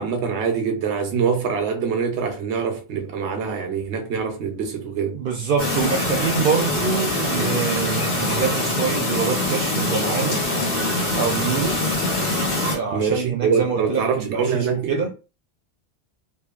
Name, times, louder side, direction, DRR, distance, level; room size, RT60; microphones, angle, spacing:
voice 1, 0.0-5.2 12.9-15.0, right 6 dB, 85° right, 0.9 m, -24 dB
voice 2, 5.1-10.4 11.1-11.9 12.7-15.1, right 6 dB, 65° right, 0.7 m, -25 dB
Chirp tweet, 5.6-12.8, left 2 dB, 80° left, 1.4 m, -23 dB
2.7 x 2.5 x 2.4 m
omnidirectional pair, 1.1 m